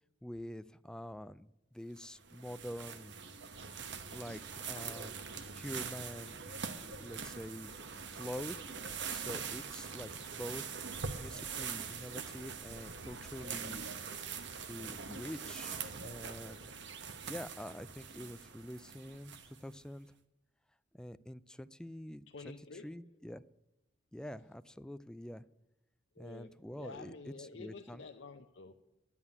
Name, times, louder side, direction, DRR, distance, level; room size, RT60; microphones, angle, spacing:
voice 1, 0.2-3.2 4.1-5.1 5.5-6.5 6.8-7.7 8.1-8.6 9.1-10.6 11.2-13.9 14.7-16.6 17.3-20.1 20.9-22.5 22.8-23.4 24.1-25.4 26.2-28.0, equal, 5° left, 15 dB, 0.3 m, -46 dB
sound 1, 2.0-19.7, right 6 dB, 65° right, 1.0 m, -43 dB
voice 2, 4.6-5.1 8.9-9.6 11.1-11.2 11.9-12.0 22.3-22.9 26.1-28.7, left 4 dB, 70° left, 4 dB, 0.7 m, -51 dB
11.0 x 7.3 x 9.6 m, 0.91 s
head